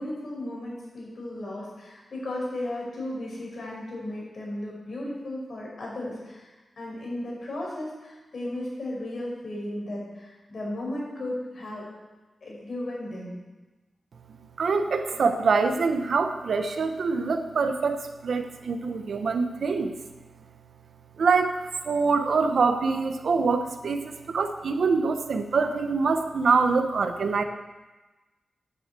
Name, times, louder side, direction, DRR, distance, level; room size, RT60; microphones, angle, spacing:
voice 1, 0.0-11.9 12.4-13.4, left 1 dB, 55° left, -3 dB, 5.2 m, -35 dB
voice 2, 14.6-20.0 21.2-27.4, right 4 dB, 70° right, 7 dB, 1.0 m, -25 dB
9.9 x 7.9 x 8.2 m, 1.2 s
wide cardioid pair, 145°, 0 cm